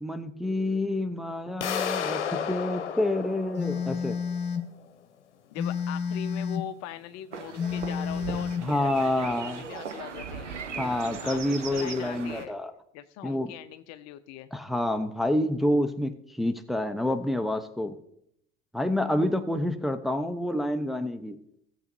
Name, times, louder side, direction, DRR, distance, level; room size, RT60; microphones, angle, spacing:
voice 1, 0.0-4.2 8.6-9.6 10.8-12.7 13.2-13.5 14.5-18.0 18.7-21.4, left 1 dB, ahead, 7 dB, 0.8 m, -28 dB
sound 1, 1.6-4.4, left 8 dB, 75° left, 0.9 m, -32 dB
Telephone, 3.6-4.7 5.6-6.7 7.6-8.7, left 6 dB, 30° left, 1.6 m, -30 dB
voice 2, 5.5-10.5 11.2-11.4 11.7-12.6 12.9-14.5, left 12 dB, 50° left, 11 dB, 0.7 m, -41 dB
sound 2, 7.3-12.5, right 6 dB, 85° right, 0.8 m, -38 dB
17.0 x 7.5 x 2.7 m, 0.76 s
figure-of-eight pair, 65°, 35 cm